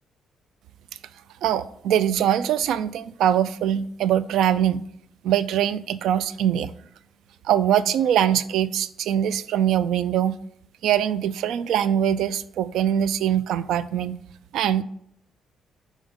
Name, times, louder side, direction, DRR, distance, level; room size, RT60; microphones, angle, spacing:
voice 1, 1.4-4.8 5.2-6.7 7.5-10.4 10.8-14.1 14.5-14.8, right 10 dB, 80° right, 0.3 m, -22 dB
5.1 x 5.0 x 5.4 m
cardioid pair, 90°, 0 cm